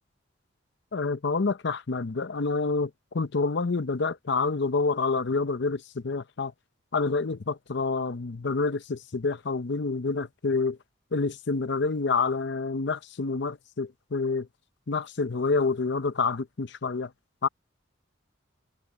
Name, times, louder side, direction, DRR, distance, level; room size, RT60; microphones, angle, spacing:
voice 1, 0.9-6.5 6.9-10.8 11.1-14.5 14.9-17.1 17.4-17.5, left 4 dB, 60° left, 0.7 m, -28 dB
head